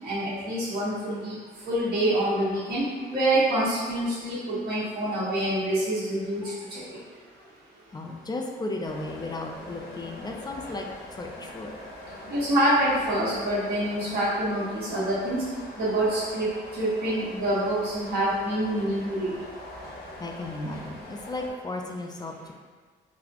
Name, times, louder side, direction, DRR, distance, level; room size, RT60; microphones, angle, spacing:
voice 1, 0.0-1.3 1.6-2.8 3.1-6.4 6.7-6.8 12.3-15.4 15.8-19.3, right 1 dB, 50° right, -11 dB, 1.4 m, -26 dB
voice 2, 4.1-4.9 6.4-6.9 7.4-7.6 7.9-10.9 11.2-11.8 18.7-19.5 20.2-22.5, left 2 dB, 20° left, 2 dB, 0.4 m, -36 dB
sound 1, 8.8-21.5, left 1 dB, 50° left, 0.8 m, -43 dB
4.0 x 2.1 x 2.9 m, 1.5 s
cardioid pair, 90°, 20 cm